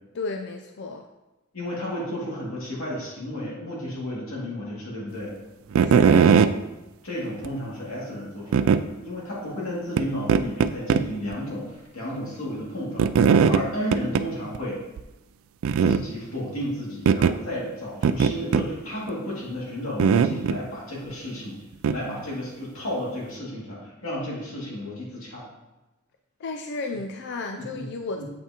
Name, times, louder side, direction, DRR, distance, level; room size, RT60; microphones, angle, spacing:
voice 1, 0.1-1.1 5.8-6.4 26.4-28.2, left 3 dB, 55° left, 4 dB, 0.4 m, -33 dB
voice 2, 1.5-5.4 7.0-14.8 15.8-21.6 21.9-25.5 27.6-27.9 28.2-28.3, equal, 90° left, -6 dB, 2.3 m, -32 dB
sound 1, 5.7-6.5 7.4-7.5 8.5-8.8 10.0-10.1 10.3-11.0 11.3-11.4 13.0-13.6 13.9-14.3 14.5-14.6 15.0-15.1 15.6-16.0 17.1-17.4 18.0-18.7 20.0-20.6 21.8-22.0, right 6 dB, 75° right, 0.3 m, -19 dB
7.7 x 5.7 x 2.9 m, 1.1 s
head